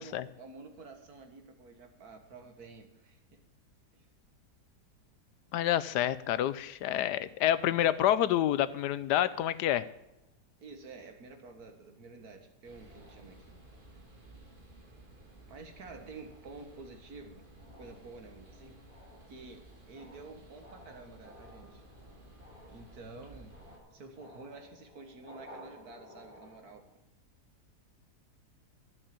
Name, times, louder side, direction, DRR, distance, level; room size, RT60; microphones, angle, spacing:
voice 1, 0.0-3.4 3.9-4.1 10.6-13.5 15.5-17.5 17.8-18.8 19.3-21.8 22.7-23.5 23.9-26.8, right 3 dB, 65° right, 5 dB, 2.0 m, -50 dB
voice 2, 5.5-9.8, left 12 dB, 85° left, 16 dB, 1.2 m, -28 dB
sound 1, 9.9-10.9 11.6-11.8 12.1-12.5 12.9-14.2 14.6-14.9 15.4-26.9, left 1 dB, 35° left, 3.1 m, -57 dB
sound 2, 12.6-23.8, right 1 dB, 30° right, 2.0 m, -55 dB
12.5 x 6.5 x 8.8 m, 0.87 s
omnidirectional pair, 1.7 m